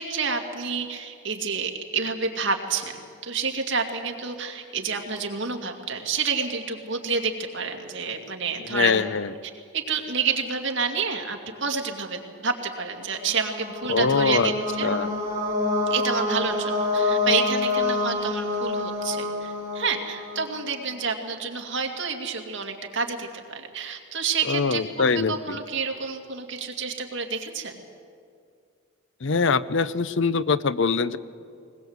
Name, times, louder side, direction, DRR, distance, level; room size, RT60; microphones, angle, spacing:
voice 1, 0.0-9.0 9.7-14.9 15.9-27.8, right 5 dB, 60° right, 3 dB, 2.4 m, -29 dB
voice 2, 8.7-9.3 13.9-14.5 14.8-15.1 24.5-25.6 29.2-31.2, left 5 dB, 60° left, 15 dB, 0.6 m, -23 dB
sound 1, 13.1-20.8, left 2 dB, 15° right, 5.3 m, -27 dB
21.0 x 20.5 x 8.1 m, 2.4 s
head